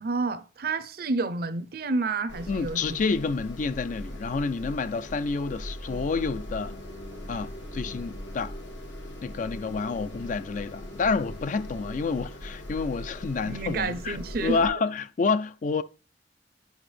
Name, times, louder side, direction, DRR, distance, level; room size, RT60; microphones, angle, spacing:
voice 1, 0.0-3.0 13.4-14.7, right 3 dB, 55° right, 0.6 m, -30 dB
sound 1, 2.3-14.7, equal, 90° left, 1.5 m, -40 dB
voice 2, 2.5-6.7 7.3-8.5 9.2-15.8, left 4 dB, 45° left, 0.3 m, -29 dB
sound 2, 5.9-12.9, left 1 dB, 70° left, 1.2 m, -47 dB
8.0 x 4.9 x 3.2 m
head